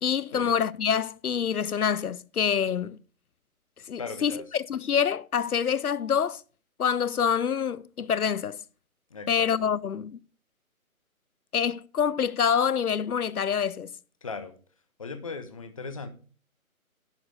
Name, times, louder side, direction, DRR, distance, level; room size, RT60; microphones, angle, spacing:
voice 1, 0.0-3.0 3.9-6.4 6.8-8.6 9.3-10.2 11.5-13.9, left 7 dB, 85° left, 0.6 m, -26 dB
voice 2, 3.9-4.4 9.1-9.7 14.2-14.5 15.0-16.1, left 4 dB, 25° left, 0.8 m, -38 dB
11.0 x 4.9 x 6.5 m
figure-of-eight pair, 150°, 43 cm